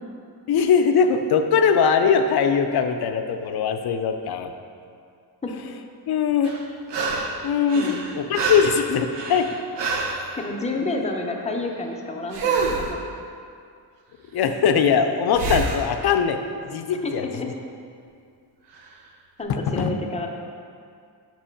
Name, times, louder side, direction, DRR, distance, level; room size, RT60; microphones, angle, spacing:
voice 1, 0.5-4.5 6.1-6.6 7.4-9.5 14.3-16.4 16.7-17.3 19.5-19.9, left 6 dB, 65° left, 7 dB, 0.5 m, -21 dB
huff and puff, 6.4-7.4 7.7-10.3 12.3-12.9 15.3-15.9 18.8-18.9, right 4 dB, 85° right, 0.7 m, -26 dB
voice 2, 10.4-13.0 17.0-17.5 19.4-20.3, left 2 dB, 15° left, 1 dB, 0.6 m, -29 dB
6.1 x 3.0 x 5.7 m, 2.3 s
wide cardioid pair, 120°, 41 cm